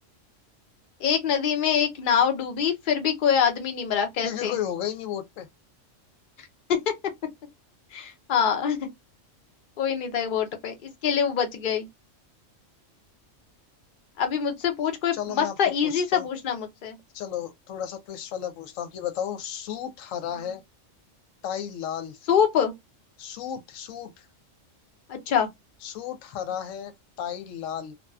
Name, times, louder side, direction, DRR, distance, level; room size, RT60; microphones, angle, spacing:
voice 1, 1.0-4.6 6.4-6.9 7.9-8.8 9.8-11.9 14.2-17.0 22.3-22.7 25.1-25.5, left 8 dB, 50° left, 0.8 m, -25 dB
voice 2, 4.2-5.5 15.1-15.6 15.8-16.3 17.1-20.6 21.4-22.2 23.2-24.3 25.8-27.9, left 9 dB, 90° left, 1.0 m, -33 dB
2.7 x 2.2 x 2.2 m
omnidirectional pair, 1.3 m